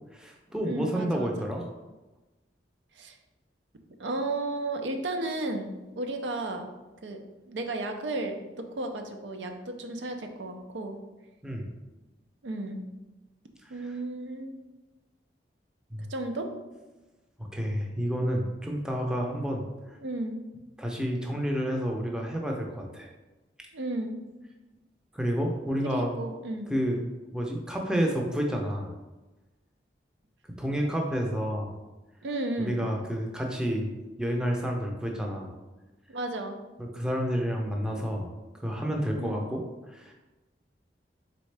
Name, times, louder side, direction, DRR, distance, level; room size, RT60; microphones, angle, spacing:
voice 1, 0.1-1.7 11.4-11.7 15.9-16.1 17.4-20.0 20.8-23.1 25.1-26.2 26.7-27.0 27.3-28.9 30.6-31.7 32.6-33.9 34.2-35.5 36.8-38.3 38.6-40.1, equal, 5° right, 0 dB, 0.5 m, -30 dB
voice 2, 0.6-1.5 3.0-3.2 4.0-5.7 6.0-6.7 7.0-7.2 7.5-11.0 12.4-12.8 13.7-14.5 16.1-16.5 20.0-20.4 23.7-24.2 25.8-26.7 32.2-32.8 36.1-36.6 39.2-39.5, right 2 dB, 90° right, 5 dB, 0.5 m, -33 dB
4.0 x 3.5 x 3.3 m, 1.1 s
head